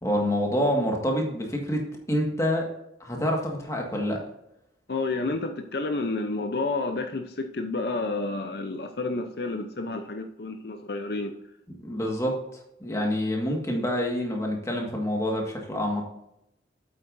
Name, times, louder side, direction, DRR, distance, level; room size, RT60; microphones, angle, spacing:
voice 1, 0.0-1.8 2.1-2.7 3.0-4.2 11.8-12.4 12.8-16.0, equal, 15° left, 0 dB, 1.7 m, -27 dB
voice 2, 4.9-11.3, left 3 dB, 60° left, 6 dB, 0.6 m, -30 dB
8.6 x 8.2 x 2.6 m, 0.81 s
head